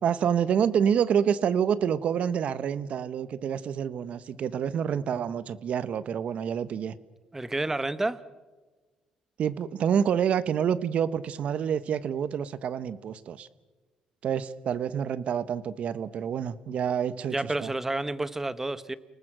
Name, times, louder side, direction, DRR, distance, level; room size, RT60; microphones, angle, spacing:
voice 1, 0.0-6.9 9.4-13.5 14.2-17.7, right 8 dB, 60° right, 15 dB, 1.2 m, -27 dB
voice 2, 7.3-8.2 17.3-18.9, right 2 dB, 15° right, 14 dB, 1.2 m, -30 dB
30.0 x 19.0 x 6.3 m, 1.3 s
cardioid pair, 95°, 2 cm